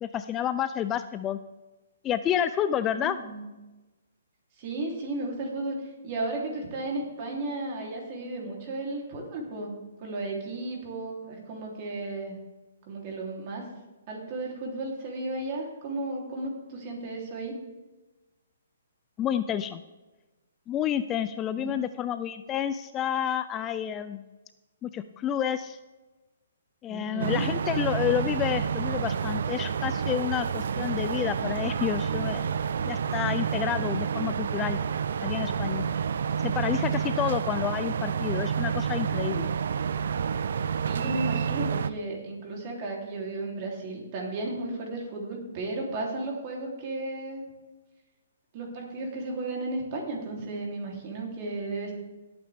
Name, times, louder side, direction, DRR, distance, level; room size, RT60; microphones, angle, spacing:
voice 1, 0.0-1.4 2.0-3.2 19.2-19.8 20.7-24.2 24.8-25.8 26.8-32.5 32.9-34.8 35.2-35.8 36.4-39.5, left 10 dB, 20° left, 12 dB, 0.4 m, -29 dB
voice 2, 2.9-3.4 4.6-5.8 6.0-9.7 10.0-12.4 12.9-13.6 14.1-17.6 21.5-21.7 26.9-27.4 40.8-47.4 48.5-51.9, right 2 dB, 40° right, 0 dB, 3.4 m, -34 dB
sound 1, 27.2-41.9, right 7 dB, 65° right, 0.5 m, -29 dB
17.5 x 8.7 x 3.6 m, 1.1 s
hypercardioid pair, 150°, 0 cm